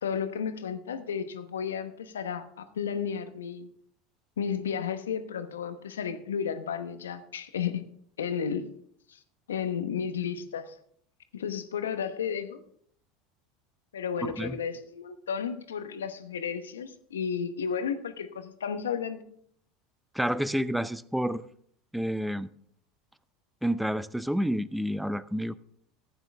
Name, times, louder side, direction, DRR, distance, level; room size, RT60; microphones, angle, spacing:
voice 1, 0.0-3.7 4.4-7.8 8.2-8.7 9.1-9.2 9.5-10.8 11.3-12.6 13.9-19.2, left 7 dB, 85° left, 10 dB, 1.0 m, -33 dB
voice 2, 20.1-21.4 21.9-22.5 23.6-25.6, equal, 5° right, 17 dB, 0.6 m, -29 dB
14.5 x 9.1 x 3.4 m, 0.65 s
hypercardioid pair, 85°, 0 cm